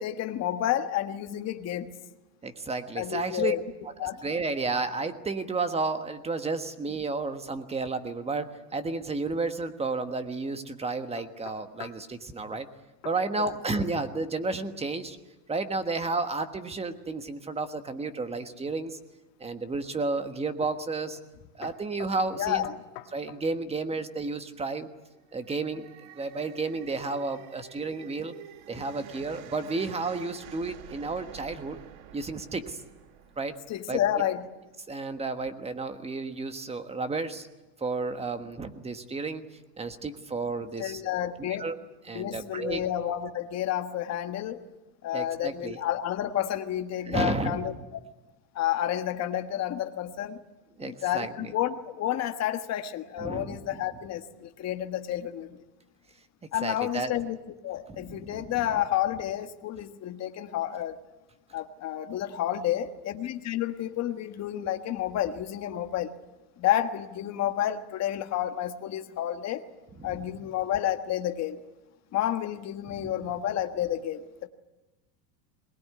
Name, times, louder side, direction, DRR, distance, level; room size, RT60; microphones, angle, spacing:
voice 1, 0.0-1.9 3.0-3.6 4.0-4.2 13.4-13.5 22.4-22.8 33.7-34.4 40.8-41.7 42.1-44.6 45.0-47.7 48.5-50.4 50.8-55.6 56.5-57.4 57.6-61.0 61.5-66.1 66.6-69.6 70.0-71.6 72.1-74.5, left 11 dB, 35° left, 7 dB, 1.5 m, -30 dB
voice 2, 2.4-3.6 4.0-12.7 13.0-15.2 15.5-19.0 19.4-21.2 21.5-22.7 23.1-24.9 25.3-25.9 26.1-28.3 28.7-31.8 32.1-32.8 33.4-33.6 33.9-34.2 34.9-37.5 37.8-39.4 39.8-41.0 41.4-41.8 42.0-42.8 45.1-45.8 47.1-47.6 50.8-51.5 53.2-53.8 56.6-57.1 57.9-58.6 70.0-70.4 72.9-73.1, right 3 dB, 15° right, 9 dB, 1.3 m, -32 dB
sound 1, 11.2-12.1 12.5-12.7 13.0-13.2 13.5-14.2 14.4-14.8 18.2-18.8 19.4-19.8 20.6-20.9 21.1-21.3 21.6-23.5, left 15 dB, 70° left, 2.0 m, -46 dB
sound 2, 25.1-34.4, right 11 dB, 60° right, 1.5 m, -49 dB
22.0 x 20.0 x 9.7 m, 1.1 s
supercardioid pair, 140°, 48 cm